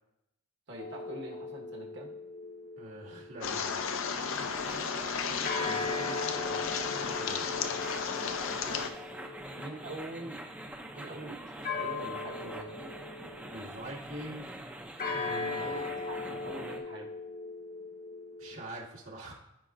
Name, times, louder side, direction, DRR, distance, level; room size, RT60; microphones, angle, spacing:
voice 1, 0.7-2.1 5.6-6.6 7.0-7.2 8.7-8.9 9.6-10.4 10.9-12.9 15.6-17.1, right 1 dB, 60° right, -1 dB, 1.4 m, -44 dB
sound 1, 0.8-4.2 5.4-10.3 11.6-14.1 15.0-18.6, left 3 dB, 45° left, 0.8 m, -39 dB
voice 2, 2.8-3.8 7.2-7.5 9.4-9.6 13.5-14.6 15.1-15.9 18.4-19.3, right 1 dB, 80° right, -5 dB, 2.2 m, -44 dB
sound 2, 3.4-8.9, left 6 dB, 75° left, 0.5 m, -34 dB
sound 3, 4.1-16.8, right 1 dB, 5° right, 0.5 m, -45 dB
14.0 x 4.9 x 2.6 m, 0.86 s
head